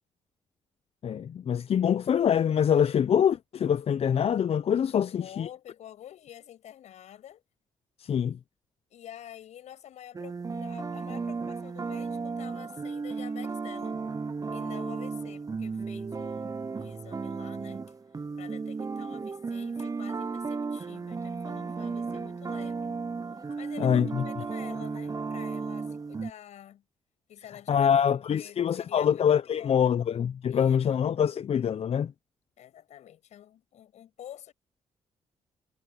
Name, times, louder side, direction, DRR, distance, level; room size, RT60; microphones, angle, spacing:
voice 1, 1.0-5.5 8.0-8.4 23.8-24.2 27.7-32.1, left 8 dB, 55° left, 0.7 m, -25 dB
voice 2, 4.9-7.4 8.9-14.0 14.5-17.8 18.4-22.9 23.4-26.8 27.3-28.0 28.3-29.3 29.5-30.0 30.5-31.1 32.6-34.5, left 11 dB, 75° left, 7.6 m, -48 dB
sound 1, 10.1-26.3, right 4 dB, 30° right, 0.7 m, -34 dB
supercardioid pair, 50°, 12 cm